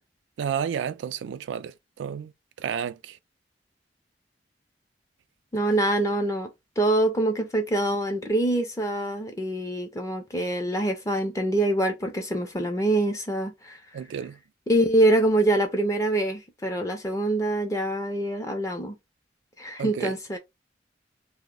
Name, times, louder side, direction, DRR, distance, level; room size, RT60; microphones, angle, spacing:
voice 1, 0.4-2.3 2.6-3.2 13.9-14.4 19.8-20.1, right 7 dB, 90° right, 0.3 m, -31 dB
voice 2, 5.5-6.5 6.8-13.8 14.7-19.0 19.6-20.4, right 1 dB, 15° left, 0.4 m, -25 dB
2.6 x 2.0 x 3.6 m
head